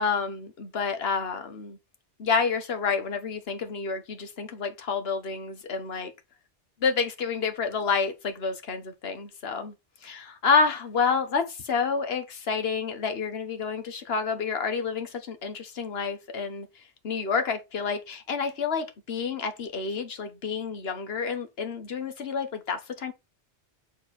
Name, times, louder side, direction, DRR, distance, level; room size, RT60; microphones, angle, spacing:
voice 1, 0.0-1.8 2.2-6.1 6.8-9.7 10.0-16.7 17.0-23.1, left 5 dB, 65° left, 1.3 m, -29 dB
6.8 x 3.6 x 4.1 m
omnidirectional pair, 1.1 m